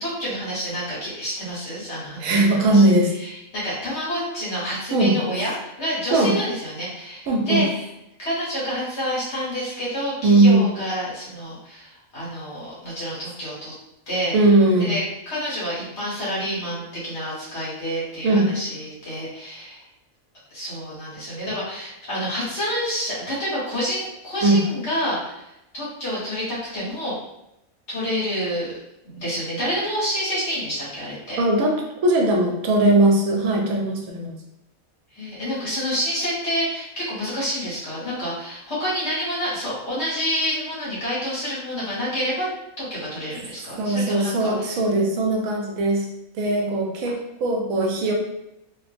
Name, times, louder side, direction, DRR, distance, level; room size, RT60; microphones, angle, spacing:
voice 1, 0.0-2.8 3.2-7.7 8.2-13.7 14.1-14.3 14.8-19.8 20.5-27.2 27.9-28.7 29.0-31.4 35.1-42.5 42.8-44.7, equal, 50° left, -8 dB, 1.6 m, -28 dB
voice 2, 2.2-3.1 4.9-5.2 6.1-6.4 7.3-7.7 10.2-10.7 14.3-15.0 18.2-18.5 24.4-24.6 31.4-34.3 43.8-46.1 46.3-48.1, right 2 dB, 80° right, 1 dB, 1.0 m, -19 dB
3.1 x 2.1 x 3.3 m, 0.87 s
omnidirectional pair, 1.5 m